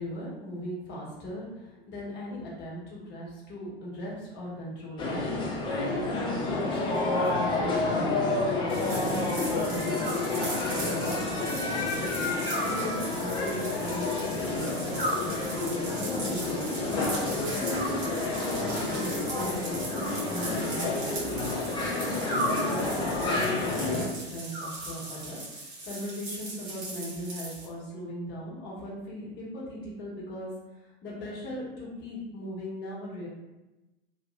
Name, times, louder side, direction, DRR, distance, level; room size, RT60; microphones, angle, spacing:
voice 1, 0.0-5.1 5.7-8.3 8.7-11.5 11.8-12.0 12.3-16.9 17.4-21.2 21.6-25.4 25.8-30.5 31.0-33.3, equal, 35° left, -5 dB, 1.1 m, -38 dB
sound 1, 5.0-24.0, left 2 dB, 15° left, 0.4 m, -29 dB
Animal, 7.8-8.7 10.0-11.0 12.5-13.5 15.0-16.0 17.7-18.6 19.9-21.0 22.3-23.2 24.5-25.4, equal, 15° right, 0.7 m, -37 dB
sound 2, 8.7-27.6, right 2 dB, 65° right, 1.3 m, -39 dB
2.9 x 2.3 x 2.3 m, 1.0 s
figure-of-eight pair, 85°, 31 cm